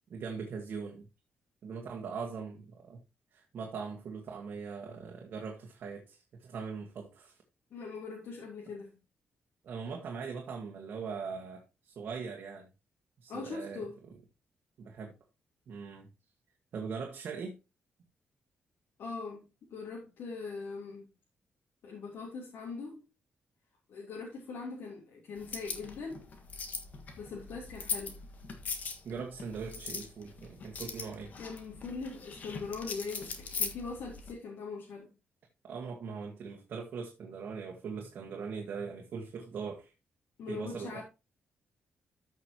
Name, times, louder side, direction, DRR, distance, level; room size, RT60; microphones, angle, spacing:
voice 1, 0.1-1.1 1.6-3.0 3.3-7.4 9.6-12.7 13.2-13.8 14.8-15.1 15.7-16.1 16.7-17.6 29.0-31.3 35.6-39.9 40.5-41.0, right 5 dB, 55° right, 1.6 m, -41 dB
voice 2, 7.7-8.9 13.3-13.9 19.0-19.4 19.7-21.0 21.8-23.0 23.9-26.2 27.2-28.2 31.4-35.1 40.4-41.0, left 4 dB, 80° left, 3.1 m, -41 dB
sound 1, 25.4-34.3, left 5 dB, 50° left, 1.6 m, -41 dB
14.0 x 6.1 x 2.9 m
wide cardioid pair, 175°, 4 cm